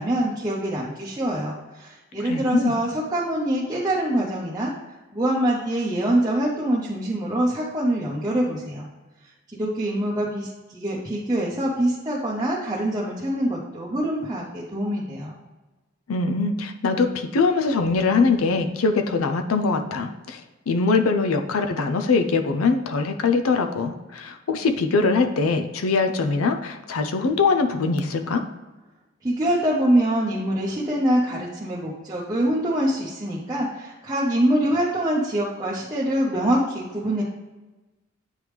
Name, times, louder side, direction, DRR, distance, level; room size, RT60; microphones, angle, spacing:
voice 1, 0.0-4.7 5.1-8.9 9.5-15.3 29.2-37.2, right 1 dB, 15° right, -7 dB, 0.7 m, -24 dB
voice 2, 2.2-2.7 16.1-20.4 20.7-28.4, left 4 dB, 90° left, 7 dB, 0.5 m, -22 dB
9.0 x 3.4 x 3.1 m, 1.1 s
head